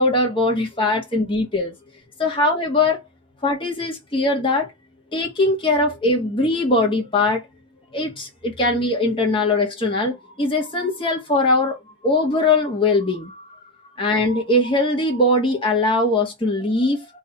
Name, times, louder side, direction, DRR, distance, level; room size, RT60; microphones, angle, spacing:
voice 1, 0.0-1.7 2.2-3.0 3.4-4.7 5.1-7.4 7.9-13.5 14.0-17.1, left 2 dB, 25° left, 1.6 m, -21 dB
3.7 x 3.1 x 3.0 m
head